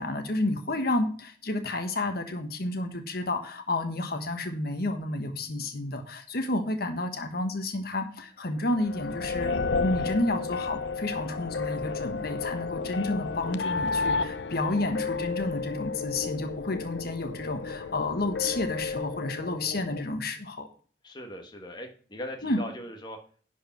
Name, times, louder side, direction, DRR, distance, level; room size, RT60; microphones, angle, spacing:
voice 1, 0.0-20.7 22.4-22.6, left 2 dB, 60° left, 6 dB, 1.3 m, -30 dB
sound 1, 8.7-20.0, left 4 dB, 85° left, 0.7 m, -32 dB
voice 2, 21.0-23.2, left 1 dB, 25° left, 3 dB, 1.4 m, -39 dB
11.0 x 4.9 x 6.0 m, 0.43 s
head